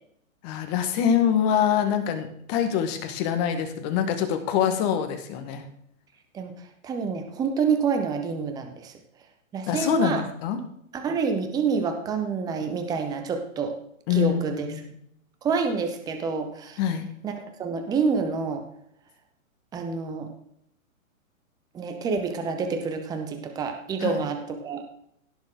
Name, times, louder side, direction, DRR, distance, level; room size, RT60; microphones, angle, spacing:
voice 1, 0.4-5.6 9.7-10.6 14.1-14.4 14.7-14.8 16.8-17.1 24.0-24.1, left 9 dB, 30° left, 7 dB, 1.6 m, -24 dB
voice 2, 6.3-8.9 9.5-10.2 10.9-13.7 14.1-14.8 15.4-16.8 17.2-18.6 19.7-20.3 21.7-24.8, right 5 dB, 10° right, 6 dB, 0.8 m, -28 dB
17.0 x 7.1 x 3.8 m, 0.71 s
hypercardioid pair, 150°, 42 cm